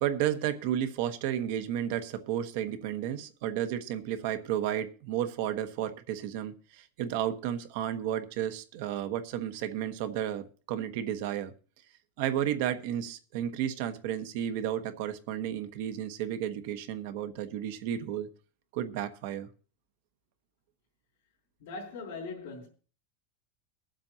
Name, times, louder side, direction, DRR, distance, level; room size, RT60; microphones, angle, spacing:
voice 1, 0.0-11.5 12.2-18.3 18.7-19.5, right 10 dB, 70° right, 1.2 m, -32 dB
voice 2, 21.6-22.7, left 3 dB, 80° left, 3.4 m, -40 dB
22.5 x 7.6 x 2.9 m
supercardioid pair, 125°, 0 cm